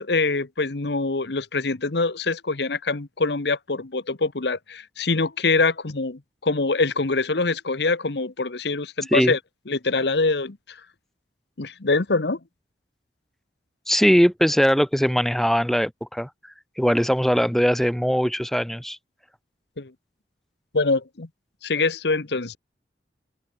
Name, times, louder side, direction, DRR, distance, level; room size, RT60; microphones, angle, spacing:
voice 1, 0.0-9.4 9.7-10.6 11.6-12.4 19.8-19.9 20.7-21.3 21.6-22.6, left 3 dB, 70° left, 1.1 m, -24 dB
voice 2, 13.9-16.3 16.8-19.0, equal, ahead, 2.9 m, -20 dB
head